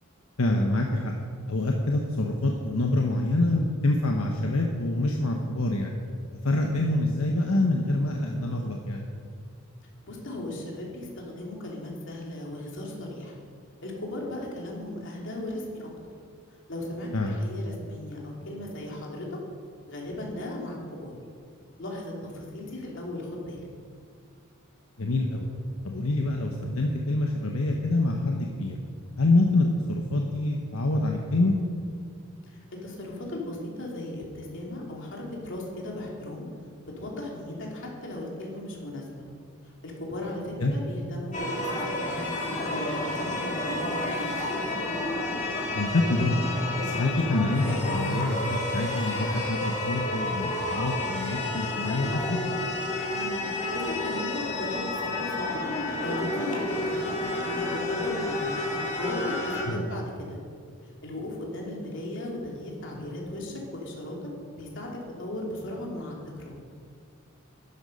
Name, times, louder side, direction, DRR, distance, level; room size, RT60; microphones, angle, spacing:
voice 1, 0.4-1.1 1.5-5.9 6.4-9.1 17.1-17.3 25.0-25.5 25.8-28.8 29.2-31.6 40.6-40.7 45.7-46.4 46.8-52.4 59.7-59.8, left 2 dB, 85° left, 1 dB, 1.1 m, -26 dB
voice 2, 10.0-13.3 13.8-15.9 16.7-19.4 19.9-21.2 21.8-23.7 32.5-36.4 37.0-39.3 39.8-42.3 42.6-43.4 43.7-44.6 53.1-53.4 53.7-55.6 56.0-58.6 59.0-60.4 61.0-64.3 64.6-64.9 65.2-66.5, left 1 dB, 60° left, -2 dB, 3.1 m, -36 dB
sound 1, 41.3-59.6, left 2 dB, 35° left, 3.0 m, -30 dB
12.5 x 11.5 x 5.4 m, 2.1 s
head